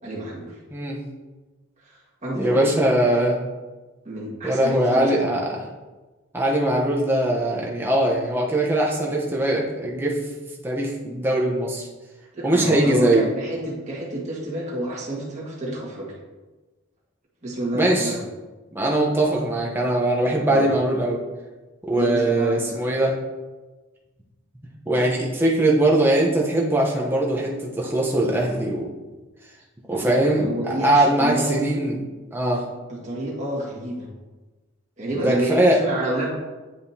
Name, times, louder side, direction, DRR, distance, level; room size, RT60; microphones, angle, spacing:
voice 1, 0.0-0.6 1.9-2.0 2.2-2.8 4.0-5.3 12.3-16.1 17.4-18.2 20.3-20.7 21.9-22.8 28.4-28.6 29.9-31.8 32.9-34.1 35.0-36.3, right 1 dB, 35° right, -5 dB, 1.7 m, -29 dB
voice 2, 2.3-3.4 4.4-5.6 6.3-10.2 10.6-11.9 12.4-13.2 17.7-18.1 18.7-21.2 21.9-23.1 24.9-28.9 29.9-32.0 32.3-32.6 35.2-35.8, right 1 dB, 10° right, -3 dB, 0.9 m, -21 dB
9.2 x 4.9 x 2.8 m, 1.2 s
head